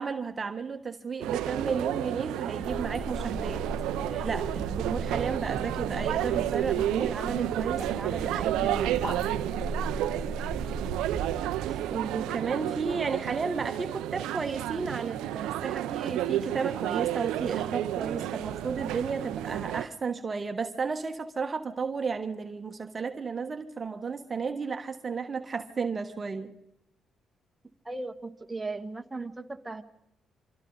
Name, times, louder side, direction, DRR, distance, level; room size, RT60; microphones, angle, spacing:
voice 1, 0.0-3.7 4.0-9.0 11.7-26.5, right 5 dB, 40° right, 1.3 m, -33 dB
sound 1, 1.2-19.9, right 13 dB, 80° right, 0.7 m, -31 dB
sound 2, 2.6-11.4, left 1 dB, 20° left, 1.7 m, -38 dB
voice 2, 27.8-29.8, right 3 dB, 20° right, 1.6 m, -37 dB
28.5 x 24.5 x 4.0 m
hypercardioid pair, 50°, 0 cm